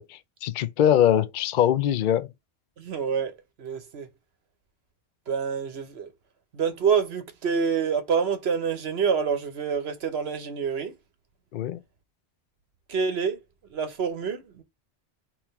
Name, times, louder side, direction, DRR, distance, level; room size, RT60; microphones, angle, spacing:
voice 1, 0.0-2.3 11.5-11.8, left 10 dB, 60° left, 0.6 m, -22 dB
voice 2, 2.8-3.3 3.6-4.1 5.3-6.1 6.5-10.9 12.9-13.4 13.7-14.6, right 6 dB, 70° right, 1.2 m, -27 dB
3.6 x 3.0 x 4.4 m
omnidirectional pair, 1.1 m